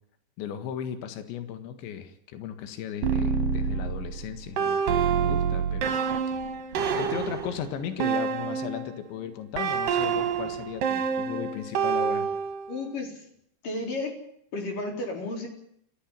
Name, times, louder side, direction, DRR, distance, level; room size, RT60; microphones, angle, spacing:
voice 1, 0.4-6.0 6.9-12.3, left 9 dB, 80° left, 9 dB, 4.0 m, -36 dB
sound 1, 3.0-9.0 9.6-12.8, right 6 dB, 60° right, 3.1 m, -27 dB
voice 2, 12.7-13.3 13.6-14.1 14.5-15.5, left 2 dB, 50° left, 2 dB, 5.5 m, -32 dB
28.5 x 15.0 x 7.5 m, 0.70 s
omnidirectional pair, 5.1 m